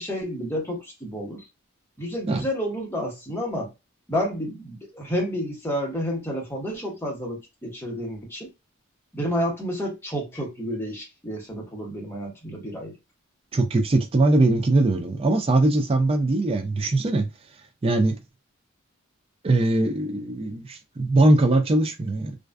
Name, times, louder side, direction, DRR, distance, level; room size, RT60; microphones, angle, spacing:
voice 1, 0.0-1.4 2.0-3.7 4.1-8.5 9.1-12.9, equal, 10° left, 1.0 m, -30 dB
voice 2, 13.5-17.3 17.8-18.2 19.4-22.3, right 2 dB, 25° right, 0.4 m, -21 dB
2.4 x 2.3 x 2.2 m
head